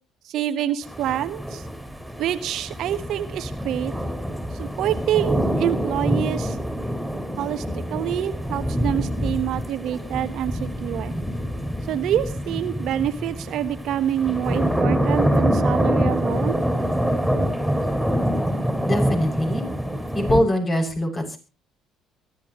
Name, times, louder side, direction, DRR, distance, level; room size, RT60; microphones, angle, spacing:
voice 1, 0.2-1.6 2.2-3.9 4.6-6.6 7.4-11.1 11.9-16.6, right 11 dB, 65° right, 11 dB, 1.2 m, -26 dB
sound 1, 0.8-20.4, equal, ahead, 5.7 m, -25 dB
voice 2, 18.8-19.6 20.1-21.4, left 1 dB, 30° left, 2 dB, 6.6 m, -23 dB
24.0 x 12.5 x 3.1 m, 0.32 s
hypercardioid pair, 55°, 0 cm